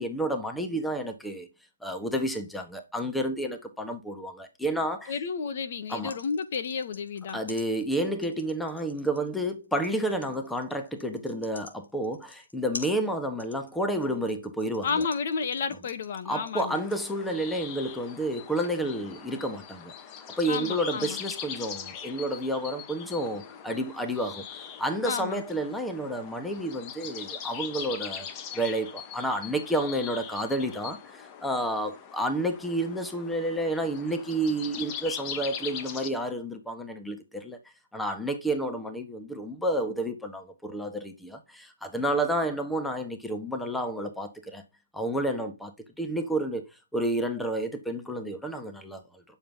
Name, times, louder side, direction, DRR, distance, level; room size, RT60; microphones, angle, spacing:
voice 1, 0.0-1.5 1.8-5.1 5.9-6.2 7.3-15.1 16.2-19.9 20.4-24.4 24.8-28.3 28.5-37.6 37.9-44.6 44.9-49.2, right 1 dB, 5° left, 1.4 m, -30 dB
voice 2, 5.1-7.4 14.8-16.8 20.5-21.2 23.7-23.8 25.0-25.4, left 5 dB, 45° left, 1.5 m, -31 dB
sound 1, 5.7-17.1, left 3 dB, 70° left, 3.0 m, -47 dB
Morning view from the banks of the Saône river, 16.7-36.1, left 8 dB, 25° left, 1.3 m, -41 dB
10.0 x 7.2 x 5.6 m
figure-of-eight pair, 135°, 0 cm